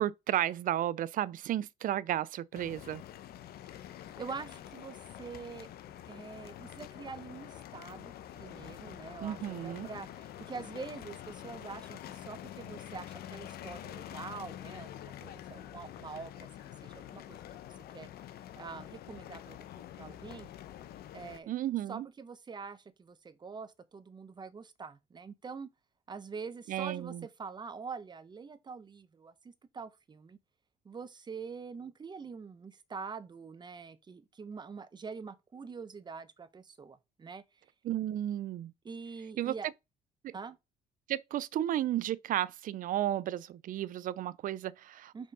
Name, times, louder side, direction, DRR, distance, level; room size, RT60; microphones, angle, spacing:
voice 1, 0.0-3.0 9.2-9.9 21.5-22.1 26.7-27.3 37.8-38.7 39.4-39.5 40.2-40.4 41.1-45.1, right 12 dB, 55° right, 0.5 m, -33 dB
sound 1, 2.5-21.4, left 11 dB, 65° left, 0.9 m, -47 dB
voice 2, 4.2-5.7 6.1-18.1 18.6-19.6 20.0-20.5 21.1-21.5 21.9-25.7 26.1-30.4 30.8-37.4 38.8-39.7 40.3-40.6 45.1-45.3, right 5 dB, 25° right, 0.9 m, -45 dB
5.3 x 5.1 x 5.4 m
cardioid pair, 110°, 17 cm